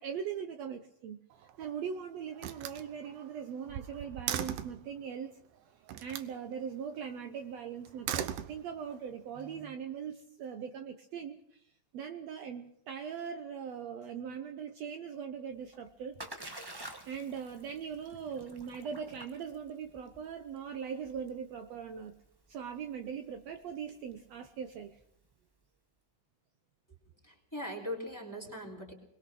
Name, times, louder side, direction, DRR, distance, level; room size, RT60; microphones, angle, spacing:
voice 1, 0.0-5.4 6.0-16.2 17.1-22.2 22.5-25.0, right 7 dB, 65° right, 6 dB, 1.9 m, -41 dB
Slam, 1.3-1.9 2.4-4.9 5.9-6.3 7.8-9.0, right 10 dB, 85° right, 2.5 m, -38 dB
Splash splatter, 15.5-25.3, right 1 dB, 30° right, 0.4 m, -51 dB
voice 2, 27.2-28.9, equal, 5° left, 2 dB, 3.4 m, -40 dB
22.5 x 21.5 x 6.2 m, 0.75 s
omnidirectional pair, 3.6 m